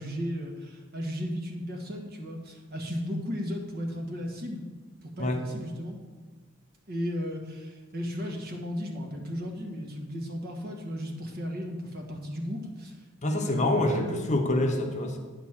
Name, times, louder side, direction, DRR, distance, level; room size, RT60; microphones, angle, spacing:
voice 1, 0.0-4.6 5.0-6.0 6.9-12.9 13.2-14.2, equal, 45° right, 2 dB, 1.4 m, -35 dB
voice 2, 13.2-15.2, left 1 dB, 35° left, 4 dB, 0.8 m, -26 dB
9.3 x 4.1 x 7.3 m, 1.4 s
head